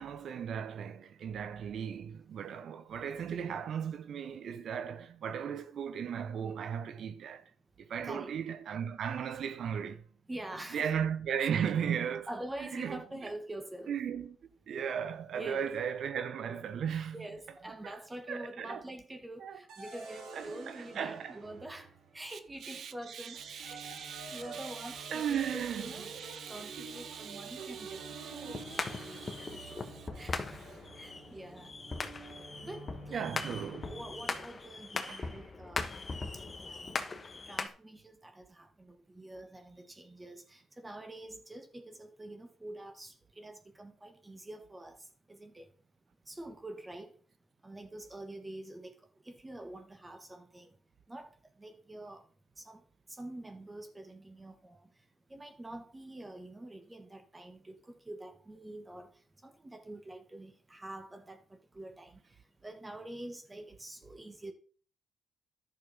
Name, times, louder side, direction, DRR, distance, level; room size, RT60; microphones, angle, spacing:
voice 1, 0.0-7.4 7.8-10.0 10.7-12.3 12.7-13.0 13.9-14.4 14.7-17.2 17.8-18.0 18.3-18.8 19.4-19.6 20.3-21.3 22.3-30.1 33.1-33.9 35.0-35.4, right 8 dB, 65° right, 0.9 m, -37 dB
voice 2, 10.3-10.9 11.4-11.5 12.3-14.0 15.3-15.7 17.1-23.8 24.3-26.2 26.5-28.0 28.3-28.6 29.4-29.6 30.2-30.4 30.9-31.7 32.6-33.3 33.8-36.0 36.3-36.9 37.5-45.7 46.3-47.2 47.6-49.0 49.2-50.7 51.1-51.3 51.6-52.2 52.6-52.8 53.1-54.9 55.3-59.1 59.4-62.4 62.6-64.5, right 1 dB, 15° right, 1.7 m, -46 dB
sound 1, 19.7-22.3 23.3-34.5, right 4 dB, 85° right, 3.6 m, -48 dB
sound 2, 28.5-37.7, left 3 dB, 30° left, 1.4 m, -40 dB
11.0 x 6.6 x 5.4 m
cardioid pair, 90°, 0 cm